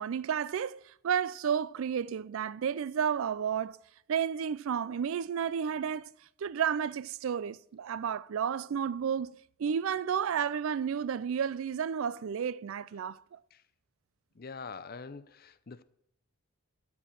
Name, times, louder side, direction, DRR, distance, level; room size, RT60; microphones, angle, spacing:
voice 1, 0.0-3.8 4.1-6.1 6.4-13.4, right 7 dB, 75° right, 0.4 m, -32 dB
voice 2, 14.3-15.8, left 4 dB, 45° left, 0.5 m, -44 dB
13.0 x 4.4 x 7.4 m
head